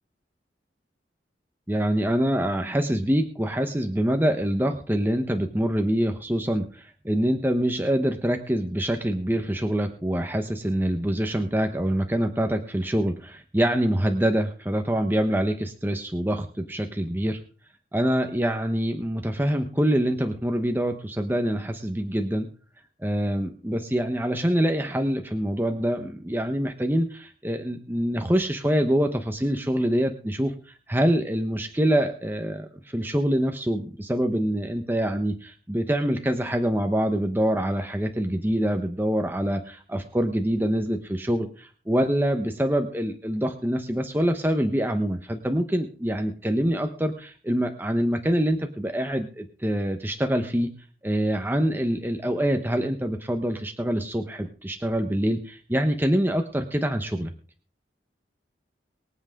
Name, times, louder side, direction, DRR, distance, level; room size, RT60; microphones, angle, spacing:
voice 1, 1.7-17.4 17.9-22.5 23.0-50.7 51.0-57.3, equal, 10° right, 5 dB, 1.0 m, -25 dB
24.0 x 8.1 x 3.7 m, 0.41 s
head